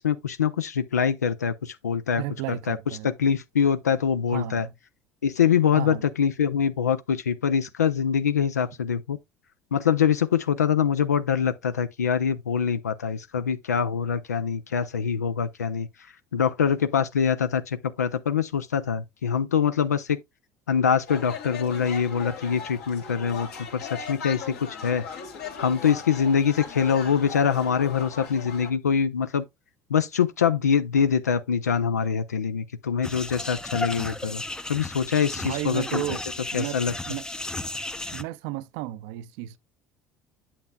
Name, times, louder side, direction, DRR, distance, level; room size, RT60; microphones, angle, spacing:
voice 1, 0.0-2.2 2.7-2.8 3.0-4.7 5.2-9.2 9.7-15.9 16.3-20.2 20.7-25.0 25.6-29.4 29.9-34.4 34.7-36.2 36.5-36.9, left 7 dB, 80° left, 0.4 m, -24 dB
voice 2, 2.2-3.1 4.3-4.7 5.7-6.0 35.4-36.2 36.5-37.2 38.1-39.6, right 15 dB, 60° right, 0.5 m, -33 dB
sound 1, 21.1-28.7, left 6 dB, 65° left, 1.8 m, -38 dB
sound 2, 33.0-38.2, left 2 dB, 10° left, 0.5 m, -34 dB
8.6 x 7.1 x 2.3 m
figure-of-eight pair, 65°, 9 cm